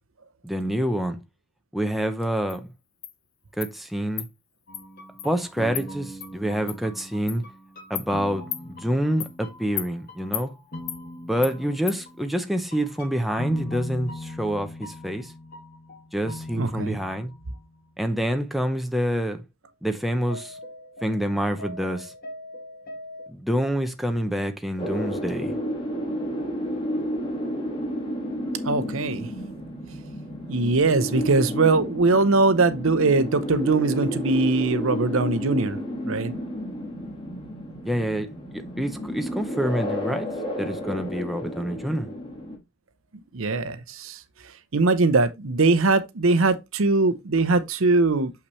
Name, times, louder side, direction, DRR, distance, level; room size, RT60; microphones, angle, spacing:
voice 1, 0.4-1.2 1.7-2.7 3.6-4.3 5.2-7.4 7.9-10.5 11.2-15.3 16.1-17.3 18.0-19.4 19.8-20.6 21.0-22.1 23.3-25.6 37.8-40.3 40.6-42.1, equal, ahead, 0.6 m, -27 dB
Insect, 2.5-2.6 3.0-3.1 3.6-3.7 4.2-4.3 4.7-4.8 5.2-5.3 5.7-5.9 6.2-6.3 6.7-6.8 7.3-7.4 8.0-8.1 8.5-8.6 9.2-9.3 9.8-9.9 10.3-10.5 10.9-11.0 11.4-11.5 11.9-12.0, left 12 dB, 60° left, 0.8 m, -32 dB
sound 1, 4.7-17.8 18.1-18.2 19.6-19.7 20.0-23.3, left 1 dB, 40° left, 2.1 m, -41 dB
voice 2, 16.5-17.0 28.6-29.3 30.5-35.8 36.0-36.4 43.3-44.2 44.7-48.3, right 3 dB, 65° right, 0.7 m, -21 dB
sound 2, 24.8-42.6, equal, 25° left, 1.7 m, -31 dB
6.8 x 5.8 x 3.1 m
head